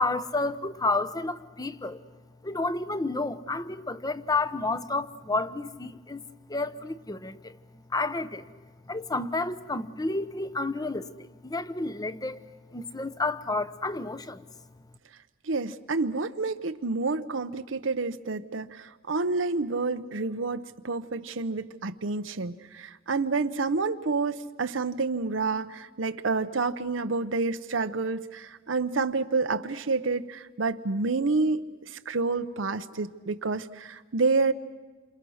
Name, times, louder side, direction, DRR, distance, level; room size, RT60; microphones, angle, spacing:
voice 1, 0.0-2.0 2.4-6.2 6.5-7.6 7.9-8.4 8.9-12.4 12.7-14.5, left 2 dB, 20° left, 13 dB, 0.9 m, -30 dB
voice 2, 15.4-34.5, right 3 dB, 80° right, 8 dB, 0.9 m, -29 dB
28.5 x 27.0 x 6.4 m, 1.3 s
head